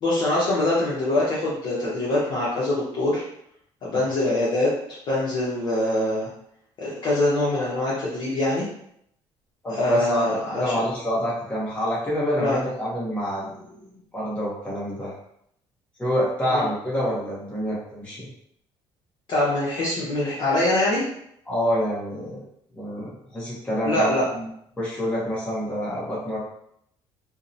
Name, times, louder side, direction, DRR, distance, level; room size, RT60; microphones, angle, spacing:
voice 1, 0.0-3.2 3.8-4.7 5.1-6.3 6.8-8.7 9.7-10.7 12.3-12.6 16.5-16.6 19.3-21.0 23.8-24.3, left 1 dB, 50° left, -7 dB, 0.7 m, -23 dB
voice 2, 9.6-13.7 14.1-15.1 16.0-18.3 21.5-22.4 22.7-24.5 24.8-26.4, equal, 10° left, -7 dB, 0.7 m, -27 dB
2.6 x 2.0 x 2.5 m, 0.72 s
cardioid pair, 155°, 10 cm